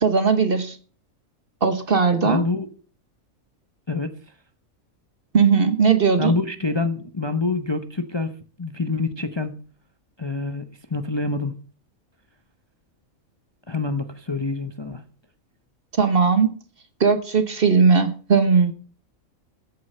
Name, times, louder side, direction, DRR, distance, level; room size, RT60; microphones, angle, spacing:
voice 1, 0.0-0.8 1.6-2.4 5.3-6.4 16.0-16.6 17.0-18.7, right 5 dB, 45° right, 1.3 m, -18 dB
voice 2, 2.2-2.7 3.9-4.1 6.2-9.6 10.2-11.5 13.7-15.0, left 3 dB, 25° left, 0.8 m, -26 dB
14.5 x 8.5 x 5.6 m
omnidirectional pair, 1.5 m